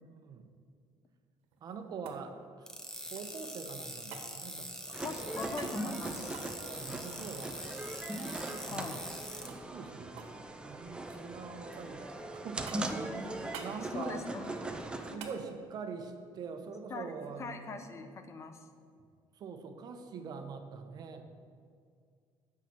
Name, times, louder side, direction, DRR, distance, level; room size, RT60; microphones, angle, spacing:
voice 1, 0.1-0.5 1.6-2.7 3.1-5.0 6.5-7.9 8.7-9.1 9.4-12.1 12.3-14.3 15.0-17.8 19.3-21.2, right 5 dB, 45° right, 6 dB, 1.0 m, -44 dB
sound 1, 1.4-3.5 4.1-4.3 5.5-5.8 6.3-8.2 8.5-8.6 8.9-9.1 9.5-10.4 10.7-11.3 11.7-12.2 12.7-13.0 13.5-13.8 15.2-15.4 17.8-17.9, right 6 dB, 85° right, 1.3 m, -49 dB
sound 2, 2.7-9.5, equal, 5° left, 1.0 m, -44 dB
sound 3, 4.9-15.2, right 2 dB, 10° right, 0.6 m, -40 dB
voice 2, 5.0-6.4 8.6-9.0 13.9-14.5 15.1-15.3 16.9-17.1 17.4-18.6, left 4 dB, 30° left, 8 dB, 0.8 m, -41 dB
8.9 x 6.0 x 7.4 m, 2.2 s
cardioid pair, 155°, 10 cm